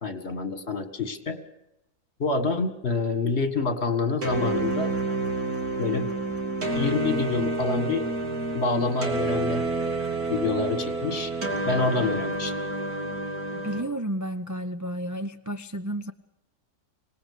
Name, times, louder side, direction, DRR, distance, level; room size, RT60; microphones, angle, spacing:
voice 1, 0.0-1.4 2.2-4.9 5.8-6.1 6.8-8.1 8.5-9.6 10.3-11.3 11.7-12.6, left 4 dB, 45° left, 8 dB, 2.2 m, -27 dB
sound 1, 4.2-13.8, right 2 dB, 85° right, 3.2 m, -29 dB
voice 2, 13.5-16.1, right 1 dB, 25° right, 6 dB, 0.4 m, -32 dB
25.5 x 19.0 x 6.8 m, 0.88 s
omnidirectional pair, 1.6 m